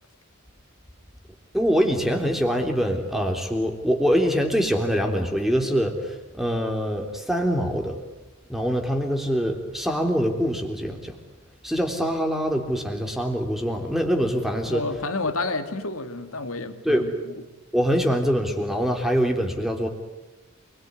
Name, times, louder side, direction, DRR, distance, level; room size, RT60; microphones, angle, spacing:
voice 1, 1.5-8.0 8.5-11.2 11.6-14.8 16.8-17.1 17.7-19.9, equal, ahead, 3 dB, 3.3 m, -24 dB
voice 2, 14.6-17.3, left 3 dB, 80° left, 8 dB, 2.7 m, -30 dB
28.0 x 21.5 x 9.6 m, 1.1 s
head